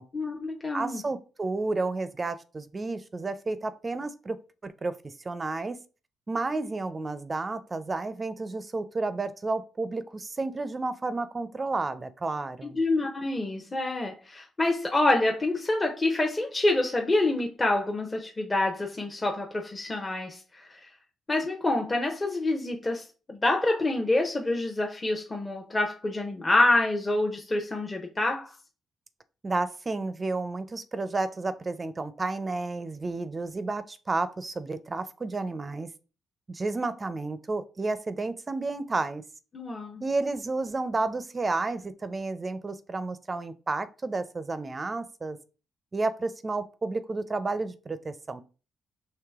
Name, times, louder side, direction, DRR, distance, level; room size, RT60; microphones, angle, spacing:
voice 1, 0.1-1.0 12.6-20.9 21.3-28.5 39.5-40.0, left 2 dB, 25° left, 0.8 m, -27 dB
voice 2, 0.7-4.4 4.6-5.8 6.3-12.8 29.4-35.9 36.5-39.2 40.0-45.4 45.9-48.4, right 3 dB, 30° right, 0.5 m, -31 dB
4.8 x 3.2 x 3.5 m
cardioid pair, 95°, 0 cm